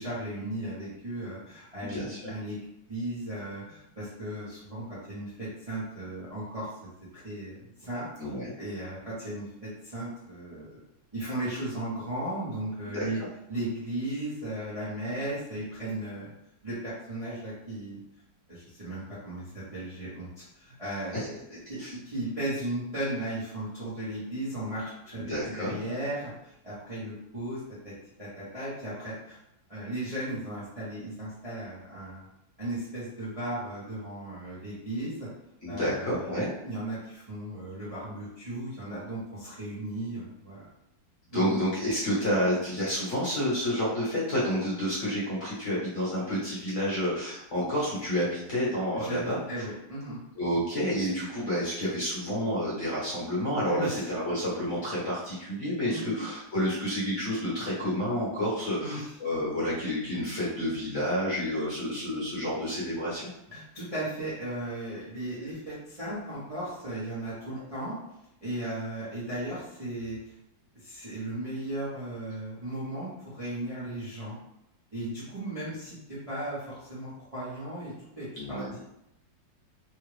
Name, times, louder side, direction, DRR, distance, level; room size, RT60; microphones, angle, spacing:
voice 1, 0.0-2.6 2.9-6.7 7.1-8.3 8.6-10.8 11.1-13.2 13.5-16.3 16.6-18.0 18.5-21.8 22.0-29.4 29.7-32.3 32.6-35.3 35.7-40.7 41.3-41.5 48.9-50.2 53.7-54.1 55.9-56.2 58.8-59.1 63.5-67.9 68.4-70.3 70.7-74.4 74.9-78.8, right 1 dB, 25° right, -11 dB, 0.9 m, -36 dB
voice 2, 1.8-2.2 8.2-8.5 12.9-13.3 21.1-21.3 21.8-21.9 25.2-25.8 35.6-36.5 41.3-49.4 50.4-63.3 78.4-78.7, equal, 45° left, -8 dB, 1.4 m, -29 dB
3.5 x 2.4 x 3.2 m, 0.83 s
omnidirectional pair, 2.0 m